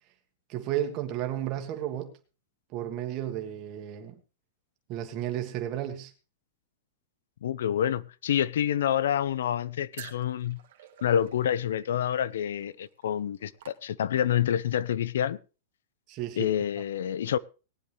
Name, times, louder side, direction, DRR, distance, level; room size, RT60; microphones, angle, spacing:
voice 1, 0.5-2.2 2.7-4.2 4.9-6.1 16.1-16.5, right 11 dB, 25° right, 1.5 m, -33 dB
voice 2, 7.4-10.6 11.0-15.4 16.4-17.4, left 10 dB, 75° left, 0.7 m, -27 dB
sound 1, 9.9-14.4, right 12 dB, 55° right, 1.7 m, -51 dB
18.5 x 9.9 x 3.4 m
supercardioid pair, 180°, 0 cm